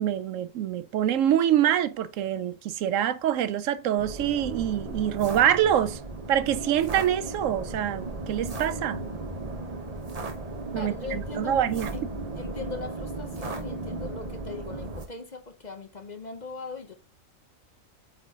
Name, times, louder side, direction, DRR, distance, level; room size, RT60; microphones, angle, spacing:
voice 1, 0.0-6.0 6.3-9.0 10.7-11.9, right 10 dB, 80° right, 0.9 m, -25 dB
sound 1, 4.0-15.1, right 2 dB, 30° right, 1.0 m, -36 dB
voice 2, 10.7-11.5 11.9-12.0 12.3-16.9, left 4 dB, 40° left, 0.8 m, -39 dB
8.4 x 4.3 x 2.8 m
omnidirectional pair, 1.4 m